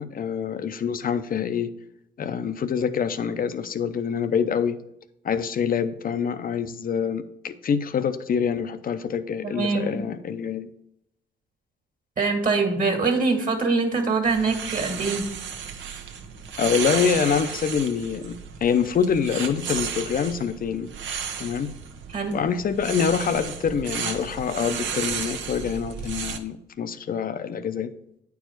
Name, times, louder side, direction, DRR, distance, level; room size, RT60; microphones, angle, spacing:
voice 1, 0.0-1.7 2.2-4.8 5.2-10.7 16.6-20.9 21.4-21.7 22.3-27.9, left 7 dB, 45° left, 12 dB, 0.7 m, -26 dB
voice 2, 9.4-10.0 12.2-15.3 22.1-22.4, right 4 dB, 45° right, 3 dB, 1.8 m, -24 dB
sound 1, 14.2-26.4, right 7 dB, 70° right, 0.9 m, -33 dB
8.9 x 4.7 x 4.5 m, 0.79 s
cardioid pair, 90°, 20 cm